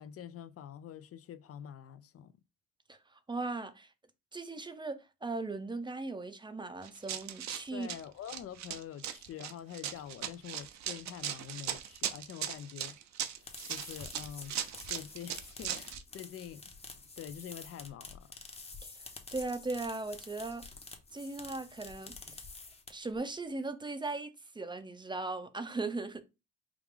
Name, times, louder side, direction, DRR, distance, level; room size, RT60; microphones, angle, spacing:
voice 1, 0.0-2.3 7.7-13.0 13.3-14.6 14.9-16.7 17.2-18.3, left 9 dB, 50° left, 0.5 m, -46 dB
voice 2, 2.9-3.9 4.3-7.9 18.8-20.6 21.1-22.4 22.9-24.3 24.5-26.2, right 3 dB, 15° right, 0.5 m, -38 dB
Run, 6.8-16.0, right 10 dB, 65° right, 0.6 m, -39 dB
sound 1, 13.2-23.2, left 3 dB, 20° left, 0.9 m, -48 dB
4.8 x 2.4 x 3.6 m
cardioid pair, 90°, 30 cm